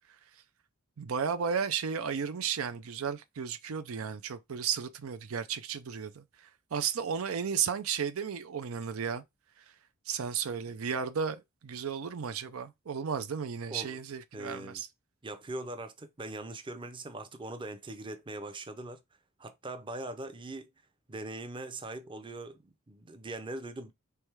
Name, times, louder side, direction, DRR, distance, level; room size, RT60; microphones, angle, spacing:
voice 1, 1.0-6.2 6.7-9.2 10.1-14.9, right 7 dB, 90° right, 0.5 m, -34 dB
voice 2, 14.3-14.8 15.2-19.0 19.4-20.7 21.1-23.9, right 2 dB, 25° right, 0.6 m, -41 dB
3.5 x 3.2 x 4.6 m
head